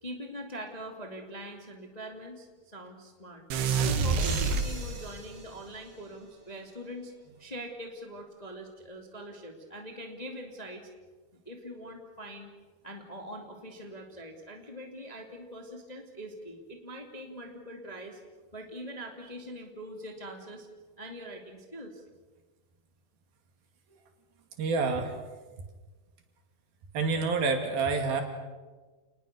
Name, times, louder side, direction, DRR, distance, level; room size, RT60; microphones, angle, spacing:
voice 1, 0.0-3.4 3.8-7.1 7.4-10.9 11.4-12.5 12.8-18.2 18.5-20.7 21.0-22.0, equal, 15° left, 2 dB, 1.8 m, -43 dB
sound 1, 3.5-5.3, right 5 dB, 85° right, 3.8 m, -27 dB
sound 2, 4.2-6.8, right 3 dB, 30° right, 2.7 m, -43 dB
voice 2, 24.6-25.1 26.9-28.2, right 4 dB, 70° right, 5 dB, 4.2 m, -27 dB
29.5 x 20.0 x 6.8 m, 1.3 s
omnidirectional pair, 4.5 m